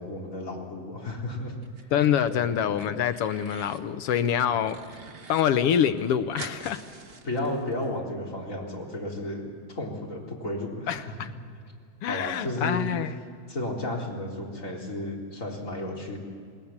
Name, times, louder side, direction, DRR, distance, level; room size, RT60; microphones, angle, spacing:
voice 1, 0.0-1.5 2.3-2.6 4.4-4.5 7.2-9.5 9.8-11.3 12.0-12.8 13.5-16.2, left 1 dB, 25° left, -1 dB, 4.1 m, -33 dB
sound 1, 1.6-2.3 2.6-3.8 4.2-5.4 5.7-5.8 6.0-7.9, right 4 dB, 50° right, 0.7 m, -45 dB
voice 2, 1.9-4.8 5.3-6.8 10.9-11.3 12.0-13.2, left 9 dB, 70° left, 10 dB, 1.5 m, -25 dB
28.5 x 20.0 x 7.3 m, 2.3 s
omnidirectional pair, 3.3 m